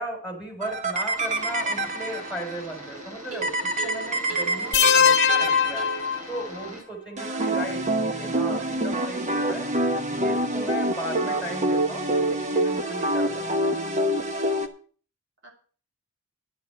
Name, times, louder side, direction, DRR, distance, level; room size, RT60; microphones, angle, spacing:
voice 1, 0.0-5.8 6.3-7.8 8.1-9.8 10.1-13.5, right 1 dB, 5° right, 2 dB, 3.8 m, -36 dB
sound 1, 0.6-2.5 3.4-6.2 7.2-14.7, right 1 dB, 35° right, 1.1 m, -26 dB
sound 2, 1.1-6.8, right 3 dB, 75° right, 6.2 m, -38 dB
voice 2, 4.5-5.8 7.2-7.6 15.4-15.5, equal, 55° right, 1 dB, 3.1 m, -43 dB
sound 3, 4.7-6.7, left 8 dB, 55° left, 0.8 m, -21 dB
11.0 x 7.5 x 6.8 m, 0.42 s
head